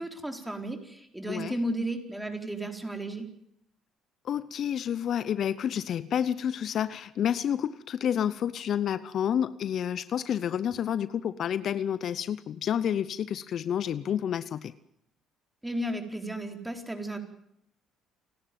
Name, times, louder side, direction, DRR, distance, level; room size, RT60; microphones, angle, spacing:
voice 1, 0.0-3.3 15.6-17.2, right 1 dB, 10° right, 4 dB, 4.2 m, -34 dB
voice 2, 4.2-14.7, left 9 dB, 60° left, 16 dB, 0.7 m, -29 dB
29.5 x 11.0 x 9.3 m, 0.76 s
supercardioid pair, 65°, 0 cm